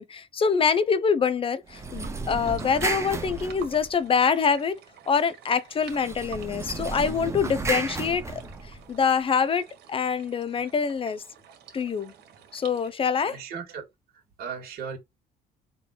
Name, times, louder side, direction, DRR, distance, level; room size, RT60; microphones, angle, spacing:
voice 1, 0.0-4.8 5.1-8.4 8.7-11.2 11.7-12.1 12.5-13.4, left 6 dB, 35° left, 0.7 m, -25 dB
sound 1, 1.7-4.2 5.8-9.0, right 3 dB, 15° right, 1.0 m, -33 dB
sound 2, 1.7-12.9, right 9 dB, 80° right, 1.8 m, -50 dB
voice 2, 13.3-13.9 14.4-15.0, right 6 dB, 65° right, 2.0 m, -36 dB
3.9 x 2.6 x 4.4 m
cardioid pair, 110°, 17 cm